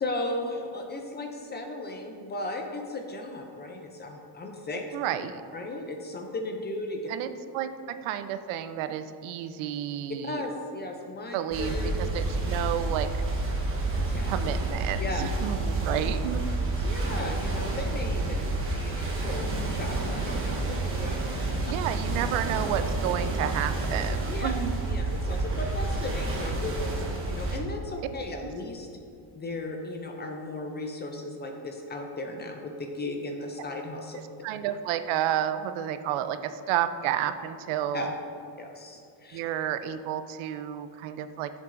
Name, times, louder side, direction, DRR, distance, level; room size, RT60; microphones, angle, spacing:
voice 1, 0.0-4.9 5.5-7.0 10.2-11.9 14.1-14.3 15.0-15.2 16.6-21.6 24.3-24.5 24.8-28.9 29.3-34.2 37.9-38.1 38.6-39.4, left 2 dB, 25° left, 3 dB, 0.3 m, -36 dB
voice 2, 4.9-5.4 7.1-10.4 11.3-13.1 14.2-16.4 21.6-24.8 34.4-38.1 39.3-41.5, right 10 dB, 80° right, 11 dB, 0.6 m, -31 dB
sound 1, 11.5-27.6, right 2 dB, 25° right, 1.0 m, -29 dB
10.5 x 7.3 x 2.5 m, 2.5 s
cardioid pair, 160°, 47 cm